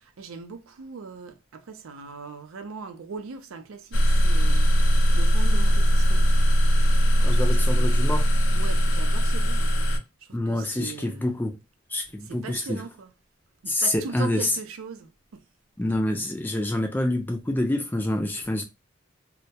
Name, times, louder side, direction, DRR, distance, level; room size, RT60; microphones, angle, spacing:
voice 1, 0.0-6.3 7.3-7.4 7.7-8.1 8.5-9.7 10.2-11.4 12.2-13.1 13.6-15.4, right 5 dB, 85° right, 0.4 m, -40 dB
sound 1, 3.9-10.0, equal, 65° left, 0.5 m, -20 dB
voice 2, 7.2-8.3 10.3-11.6 11.9-12.8 13.7-14.5 15.8-18.6, left 1 dB, 10° left, 0.4 m, -27 dB
2.2 x 2.1 x 2.7 m
head